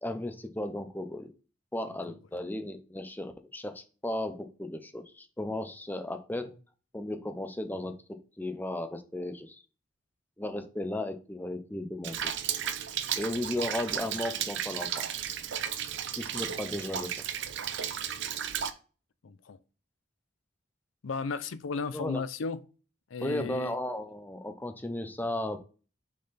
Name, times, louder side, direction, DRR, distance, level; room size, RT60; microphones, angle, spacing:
voice 1, 0.0-1.3 1.7-6.5 6.9-9.6 10.4-12.3 13.2-15.1 16.1-17.3 21.9-22.2 23.2-25.6, left 1 dB, 10° left, 0.6 m, -35 dB
Rain, 12.0-18.7, right 9 dB, 65° right, 0.6 m, -34 dB
voice 2, 19.2-19.6 21.0-22.6 23.1-23.7, left 4 dB, 80° left, 0.5 m, -34 dB
6.3 x 3.9 x 4.2 m
head